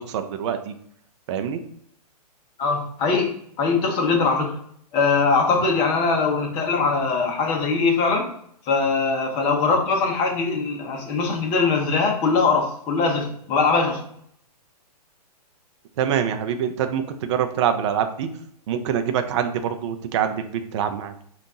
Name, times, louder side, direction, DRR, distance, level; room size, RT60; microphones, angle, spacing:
voice 1, 0.1-0.7 1.3-1.6 16.0-18.3 18.7-21.1, right 8 dB, 45° right, 7 dB, 0.5 m, -25 dB
voice 2, 2.6-4.5 4.9-8.3 8.7-14.0, left 4 dB, 25° left, 1 dB, 0.9 m, -21 dB
5.4 x 2.5 x 2.8 m, 0.66 s
hypercardioid pair, 145°, 20 cm